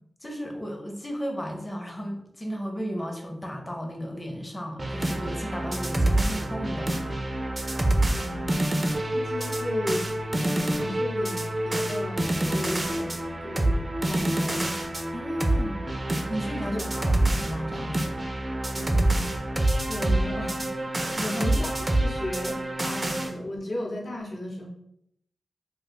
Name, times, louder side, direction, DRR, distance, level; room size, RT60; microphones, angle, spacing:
voice 1, 0.2-7.0 15.1-15.9 16.3-18.1 21.2-21.5, equal, 20° left, 2 dB, 0.6 m, -34 dB
sound 1, 4.8-23.3, right 1 dB, 30° right, 0.4 m, -27 dB
voice 2, 8.1-8.8 9.1-14.7 15.7-15.8 16.5-17.1 18.7-19.3 19.9-24.7, left 1 dB, 50° left, -2 dB, 0.7 m, -35 dB
2.5 x 2.2 x 4.0 m, 0.74 s
wide cardioid pair, 80°, 0 cm